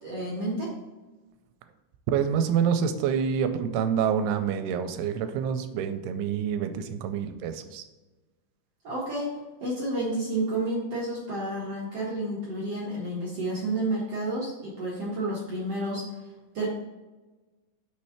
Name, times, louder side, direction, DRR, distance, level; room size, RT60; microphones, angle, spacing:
voice 1, 0.0-0.7 8.8-9.3 9.6-16.0 16.5-16.7, right 1 dB, 65° right, -6 dB, 1.5 m, -30 dB
voice 2, 2.1-7.8, right 7 dB, 85° right, 8 dB, 2.5 m, -27 dB
6.6 x 3.2 x 5.6 m, 1.2 s
omnidirectional pair, 4.6 m